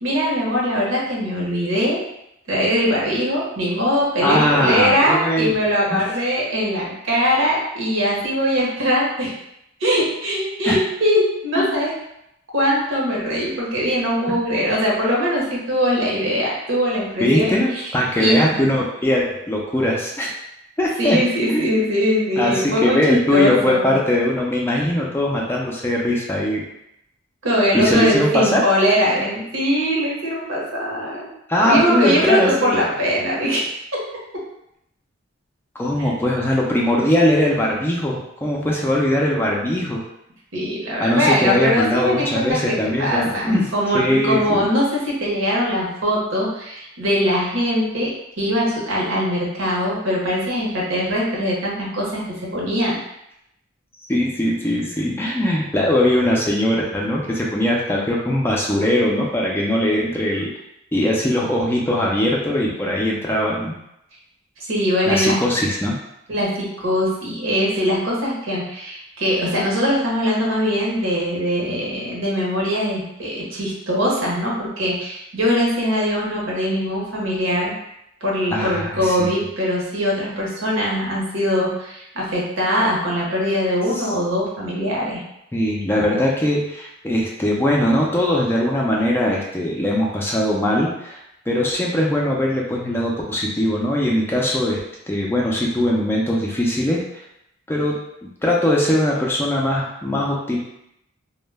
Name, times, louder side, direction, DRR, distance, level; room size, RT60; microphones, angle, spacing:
voice 1, 0.0-2.0 2.5-9.3 9.8-11.9 12.5-18.8 21.0-23.0 23.3-23.9 27.4-31.3 31.6-33.6 33.9-34.0 36.0-36.1 40.5-52.2 52.5-53.0 64.7-65.4 66.3-77.7 78.2-85.2, equal, 70° right, -4 dB, 0.8 m, -21 dB
voice 2, 4.2-5.5 5.9-6.0 10.6-10.8 11.5-11.7 17.2-20.3 20.8-21.2 21.5-21.9 22.4-26.6 27.7-28.6 31.5-32.8 35.8-40.0 41.0-43.7 43.9-44.6 54.1-60.5 60.9-63.8 65.1-65.9 78.5-79.3 83.9-84.0 85.5-91.2 91.5-94.8 95.1-97.0 97.7-100.6, left 1 dB, 10° left, -3 dB, 0.3 m, -20 dB
2.1 x 2.0 x 3.2 m, 0.81 s
head